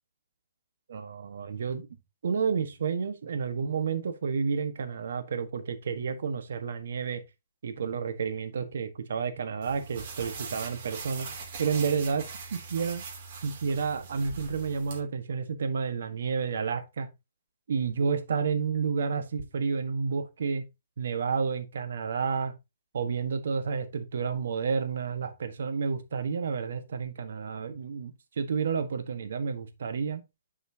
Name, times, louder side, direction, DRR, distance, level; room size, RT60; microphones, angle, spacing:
voice 1, 0.9-1.9 2.2-7.2 7.6-11.3 11.6-12.2 12.5-13.0 13.4-17.1 17.7-20.6 21.0-22.5 22.9-30.2, right 5 dB, 70° right, 1.4 m, -30 dB
sound 1, 9.6-15.0, right 4 dB, 50° right, 2.9 m, -41 dB
9.9 x 5.5 x 2.8 m
hypercardioid pair, 145°, 0 cm